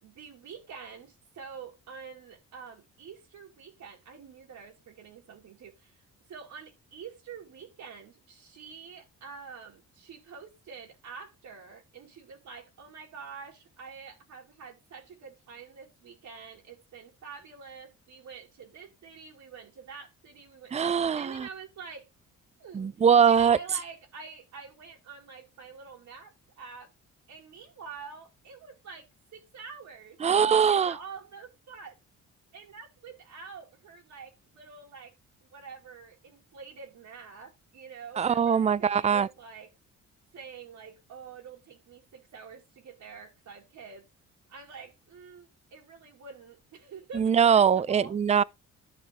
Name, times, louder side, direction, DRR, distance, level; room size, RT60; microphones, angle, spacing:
voice 1, 0.0-6.0 6.3-22.1 22.6-23.0 23.3-26.9 27.3-29.1 29.3-30.2 30.5-32.0 32.5-35.1 35.4-39.7 40.3-44.1 44.5-48.2, right 5 dB, 70° right, 2.5 m, -47 dB
voice 2, 20.7-21.5 22.7-23.6 30.2-30.9 38.2-39.3 47.2-48.4, right 7 dB, 20° right, 0.4 m, -22 dB
11.5 x 5.3 x 3.8 m
cardioid pair, 90°, 30 cm